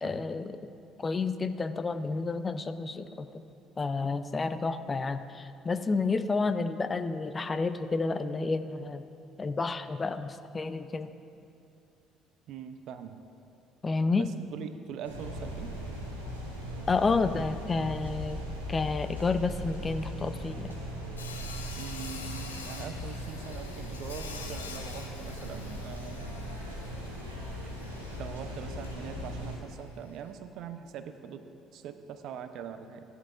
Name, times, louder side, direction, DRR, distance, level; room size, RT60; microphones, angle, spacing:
voice 1, 0.0-0.6 1.0-3.4 3.8-9.0 9.4-11.1 13.8-14.3 16.9-18.4 18.7-20.7, left 4 dB, 30° left, 11 dB, 0.5 m, -30 dB
voice 2, 12.5-13.2 14.2-15.8 21.8-26.3 28.2-31.4 31.7-33.0, right 8 dB, 55° right, 9 dB, 0.6 m, -42 dB
sound 1, 15.0-29.6, equal, 85° right, 1.2 m, -39 dB
Sawing, 21.2-30.3, left 5 dB, 80° left, 0.6 m, -47 dB
16.0 x 11.0 x 2.4 m, 2.7 s
figure-of-eight pair, 50°, 0 cm